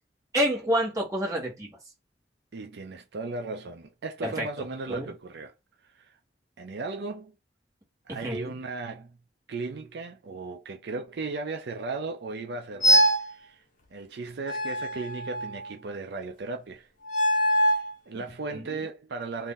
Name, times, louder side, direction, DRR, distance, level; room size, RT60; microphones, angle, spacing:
voice 1, 0.3-1.8 4.2-4.5 4.9-5.1 8.1-8.5 18.5-18.7, equal, 20° right, 1.4 m, -28 dB
voice 2, 2.5-5.5 5.8-6.2 6.6-7.3 8.1-9.2 9.5-13.6 13.9-16.9 17.4-19.5, right 3 dB, 65° right, 0.5 m, -36 dB
sound 1, 12.8-13.3 14.5-15.7 17.0-17.9, equal, 45° left, 0.8 m, -23 dB
2.7 x 2.6 x 3.7 m
head